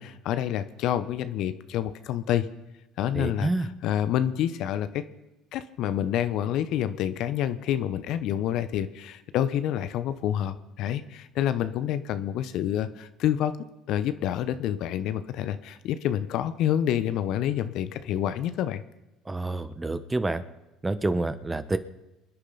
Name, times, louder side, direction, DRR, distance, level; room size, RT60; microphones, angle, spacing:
voice 1, 0.0-2.5 3.0-5.0 5.5-13.5 13.9-18.8, left 10 dB, 65° left, 12 dB, 0.9 m, -28 dB
voice 2, 3.2-3.6 19.3-20.4 20.8-21.8, right 2 dB, 15° right, 11 dB, 1.1 m, -28 dB
25.5 x 10.0 x 4.1 m, 0.97 s
hypercardioid pair, 70°, 0 cm